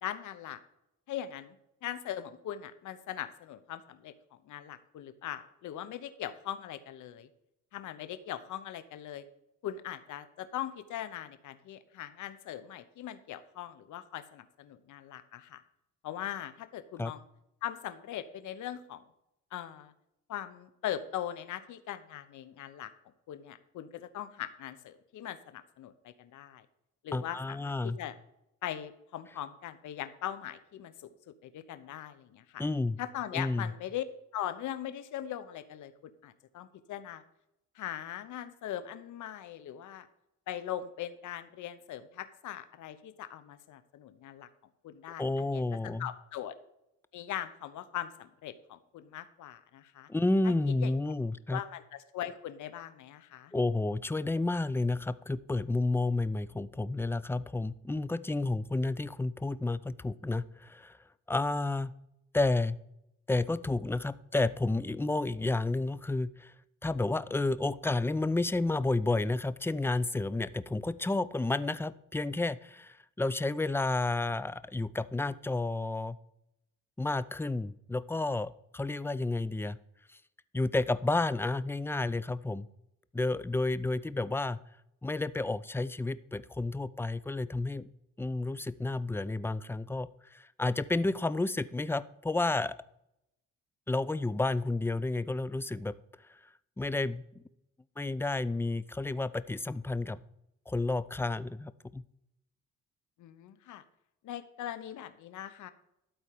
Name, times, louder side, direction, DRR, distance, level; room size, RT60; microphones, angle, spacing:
voice 1, 0.0-0.6 1.1-1.5 1.8-4.1 4.5-7.3 7.7-9.2 9.6-15.6 16.0-17.2 17.6-19.0 19.5-19.9 20.3-22.9 23.3-26.6 27.0-28.1 28.6-30.9 31.3-32.6 33.0-34.0 34.3-37.2 37.7-40.1 40.5-44.5 44.8-45.6 46.0-46.5 47.1-50.1 50.8-50.9 51.5-53.5 103.2-103.8 104.2-105.7, left 11 dB, 75° left, 12 dB, 1.0 m, -40 dB
voice 2, 27.1-28.0 32.6-33.0 33.3-33.7 45.1-46.1 50.1-51.6 53.5-61.0 61.3-61.9 62.3-62.8 63.3-66.5 66.8-76.2 77.0-79.8 80.1-80.2 80.5-82.7 83.1-84.6 85.0-87.9 88.2-92.8 93.9-96.0 96.3-96.4 96.8-97.4 98.0-100.2 100.7-102.0, left 2 dB, 10° left, 17 dB, 0.5 m, -31 dB
12.5 x 4.4 x 8.4 m, 0.82 s
cardioid pair, 90°, 30 cm